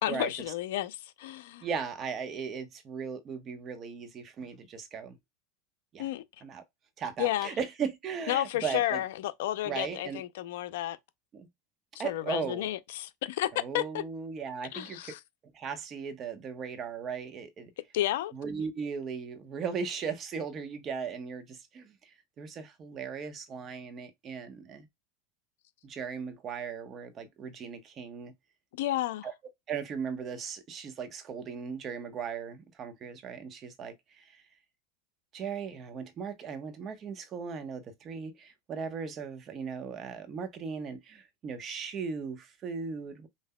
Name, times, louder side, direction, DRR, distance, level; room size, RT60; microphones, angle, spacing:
voice 1, 0.0-1.7 6.0-6.2 7.2-7.5 8.3-11.0 12.0-13.5 13.7-14.0 14.7-15.2 17.9-18.3 28.8-29.3, left 14 dB, 75° left, 0.5 m, -31 dB
voice 2, 1.6-5.2 5.9-6.1 6.4-6.6 7.0-9.0 9.6-10.2 11.3-11.5 12.0-12.7 13.5-15.1 15.5-17.7 18.3-24.9 25.8-28.3 29.2-29.3 29.7-34.4 35.3-43.3, right 6 dB, 35° right, 1.0 m, -37 dB
5.6 x 2.6 x 2.2 m
supercardioid pair, 115°, 0 cm